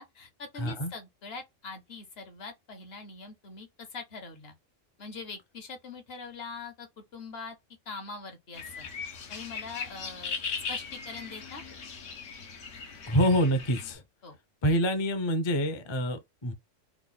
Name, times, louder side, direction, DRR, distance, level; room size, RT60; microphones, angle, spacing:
voice 1, 0.0-4.5 5.0-6.9 7.1-7.5 7.9-8.9 9.3-10.4 10.7-11.6 14.2-14.4, left 4 dB, 55° left, 1.1 m, -42 dB
voice 2, 0.6-0.9 13.0-14.0 14.6-16.5, equal, 30° left, 0.6 m, -26 dB
sound 1, 8.5-13.9, left 5 dB, 75° left, 1.2 m, -39 dB
3.4 x 2.2 x 3.9 m
omnidirectional pair, 1.3 m